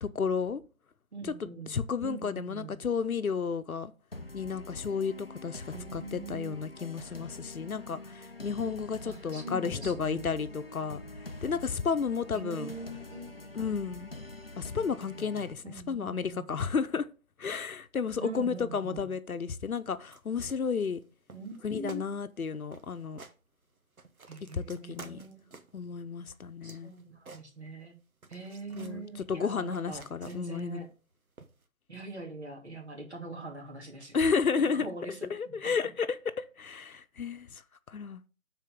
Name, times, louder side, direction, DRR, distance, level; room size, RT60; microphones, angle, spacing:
voice 1, 0.0-0.6 1.2-1.3 1.7-3.9 4.3-5.6 5.9-11.0 11.4-12.7 13.5-14.1 14.6-17.1 17.4-21.0 21.6-23.2 24.5-25.2 25.7-26.9 28.7-30.8 34.1-34.9 35.3-36.1 36.4-37.6 37.9-38.2, left 5 dB, 80° left, 0.9 m, -32 dB
voice 2, 1.1-1.7 2.0-2.8 5.7-6.6 9.0-10.3 12.3-13.6 15.6-16.5 18.2-19.1 21.3-22.0 24.3-25.5 26.6-28.0 28.3-30.9 31.9-34.2 34.7-35.7, right 3 dB, 50° right, 2.7 m, -43 dB
sound 1, 4.1-15.5, left 2 dB, 45° left, 0.6 m, -45 dB
sound 2, 20.0-20.2 20.5-21.0 21.3-21.6 21.9-22.1 22.4-22.5 22.7-23.4 23.8-25.8 26.3-27.9 28.2-29.0 29.4-30.6 31.4-31.7, right 4 dB, 80° right, 1.2 m, -51 dB
11.5 x 4.5 x 3.7 m
figure-of-eight pair, 180°, 42 cm